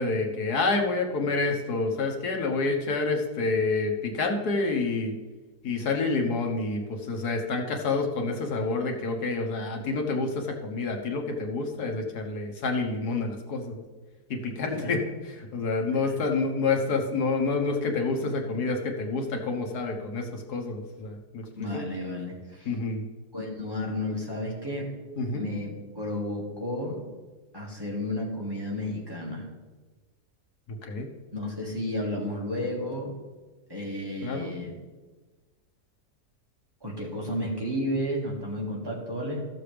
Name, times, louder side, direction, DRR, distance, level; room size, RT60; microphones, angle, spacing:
voice 1, 0.0-5.2 5.6-13.8 14.3-15.0 15.3-21.8 22.6-23.0 25.2-25.5 30.8-31.1 34.2-34.5, left 3 dB, 75° left, 3 dB, 1.6 m, -28 dB
voice 2, 21.6-22.7 23.3-24.9 25.3-27.0 27.5-29.5 31.3-33.1 33.7-34.8 36.8-39.5, left 1 dB, 15° right, -4 dB, 1.9 m, -32 dB
14.0 x 6.8 x 3.4 m, 1.3 s
omnidirectional pair, 1.7 m